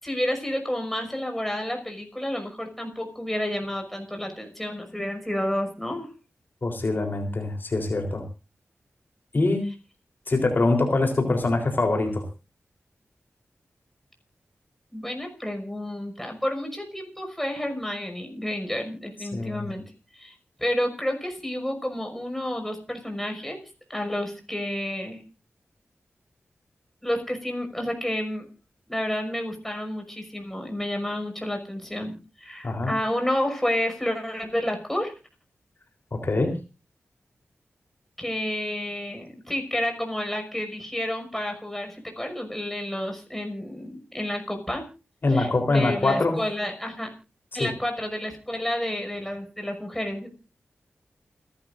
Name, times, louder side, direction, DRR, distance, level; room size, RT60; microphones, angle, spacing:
voice 1, 0.0-6.1 14.9-19.8 20.1-23.6 23.9-25.2 27.0-28.5 28.9-35.1 38.2-44.8 45.3-47.1 47.5-50.3, left 1 dB, 5° left, 4 dB, 6.0 m, -30 dB
voice 2, 6.6-8.2 9.3-9.6 10.3-12.3 19.3-19.7 32.6-32.9 36.1-36.5 45.2-46.4 47.5-47.7, left 2 dB, 45° left, 3 dB, 3.8 m, -24 dB
29.0 x 12.5 x 2.6 m, 0.32 s
wide cardioid pair, 95°, 5 cm